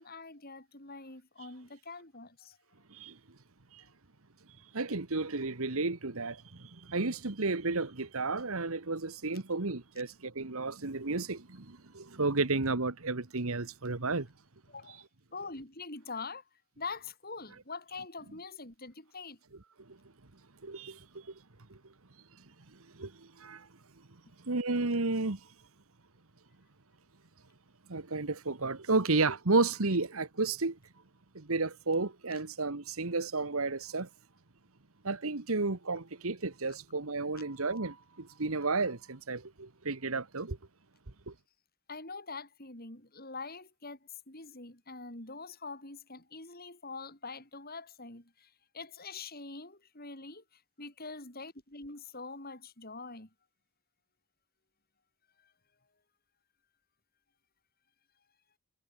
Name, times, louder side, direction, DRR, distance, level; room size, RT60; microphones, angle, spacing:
voice 1, 0.0-2.6 14.7-15.0 15.3-16.4 16.8-19.4 41.9-53.3 55.4-55.5, left 4 dB, 40° left, 4.9 m, -44 dB
voice 2, 4.7-14.3 19.8-20.0 20.6-21.3 21.7-21.8 22.7-23.7 24.4-25.4 27.9-30.8 31.3-34.1 35.0-40.6 41.3-41.4, right 3 dB, 70° right, 1.5 m, -32 dB
head